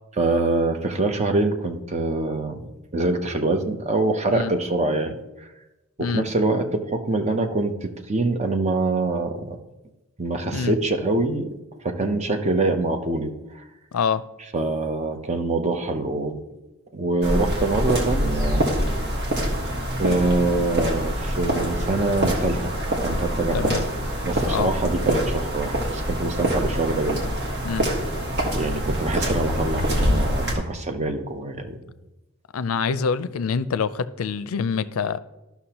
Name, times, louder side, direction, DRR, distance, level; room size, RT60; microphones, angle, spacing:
voice 1, 0.2-2.5 2.9-5.2 6.0-9.6 10.2-11.5 11.8-13.3 14.5-16.4 16.9-18.7 20.0-22.7 23.0-23.7 24.2-27.3 28.5-31.8, right 2 dB, 30° right, 6 dB, 0.7 m, -24 dB
voice 2, 13.9-14.2 23.5-23.9 24.5-24.7 27.6-27.9 32.5-35.2, left 6 dB, 80° left, 14 dB, 0.4 m, -25 dB
sound 1, 17.2-30.5, equal, 55° right, 1.6 m, -25 dB
13.0 x 5.8 x 2.9 m, 1.0 s
head